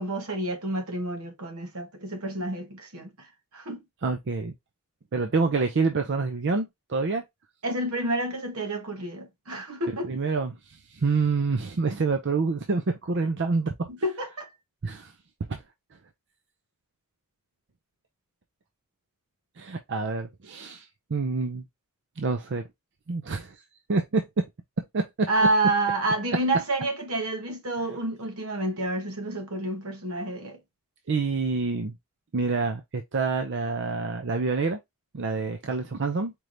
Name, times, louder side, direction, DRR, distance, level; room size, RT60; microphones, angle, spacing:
voice 1, 0.0-3.3 3.5-3.8 7.6-10.1 13.9-14.5 25.3-30.6, right 2 dB, 70° right, 1.3 m, -29 dB
voice 2, 4.0-4.5 5.1-7.2 10.1-13.7 14.8-15.1 15.5-15.6 19.6-20.9 21.1-21.6 22.2-22.6 23.1-23.6 23.9-24.3 24.9-25.0 31.1-31.9 32.3-34.8 35.1-36.3, right 4 dB, 55° right, 0.6 m, -27 dB
4.5 x 3.3 x 2.5 m
head